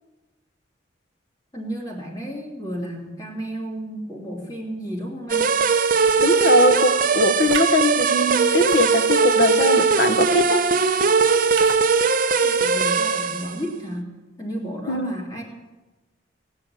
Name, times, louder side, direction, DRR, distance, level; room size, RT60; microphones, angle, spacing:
voice 1, 1.5-5.5 12.4-14.1 14.4-15.4, equal, 20° left, -2 dB, 3.0 m, -32 dB
sound 1, 5.3-13.6, right 5 dB, 45° right, 0.7 m, -19 dB
sound 2, 5.9-6.3 7.4-7.8 8.6-9.3 10.2-10.5 11.5-11.8, right 6 dB, 90° right, 1.0 m, -34 dB
voice 2, 6.2-10.6 14.9-15.1, left 1 dB, 60° left, 10 dB, 0.9 m, -21 dB
18.0 x 6.4 x 8.9 m, 1.2 s
head